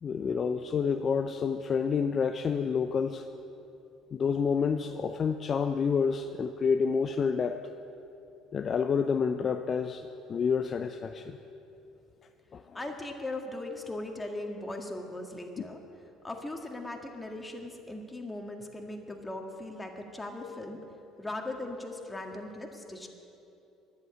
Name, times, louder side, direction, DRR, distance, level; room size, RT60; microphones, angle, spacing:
voice 1, 0.0-3.3 4.1-7.7 8.5-11.4 12.5-12.8, left 6 dB, 45° left, 7 dB, 0.5 m, -29 dB
voice 2, 12.7-15.8 16.2-20.8 21.2-23.1, left 2 dB, 15° left, 2 dB, 1.9 m, -39 dB
10.5 x 8.0 x 9.5 m, 2.8 s
supercardioid pair, 75°, 0 cm